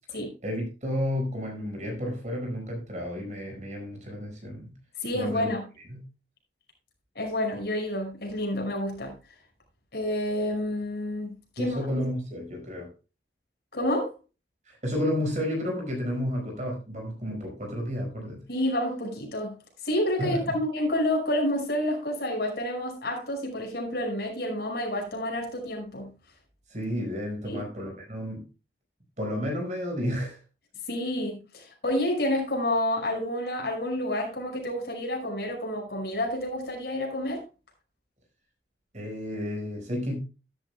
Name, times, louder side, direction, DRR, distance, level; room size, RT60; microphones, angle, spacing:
voice 1, 0.4-4.7 5.1-5.5 5.9-6.0 11.6-12.9 14.7-18.4 20.2-20.6 26.7-28.4 29.2-30.4 38.9-40.2, equal, 40° right, 5.2 m, -31 dB
voice 2, 5.0-5.6 7.2-9.1 9.9-11.8 13.7-14.1 18.5-19.5 19.8-26.1 27.4-27.6 30.9-37.4, left 1 dB, 65° left, 5.5 m, -29 dB
13.0 x 12.5 x 2.2 m
head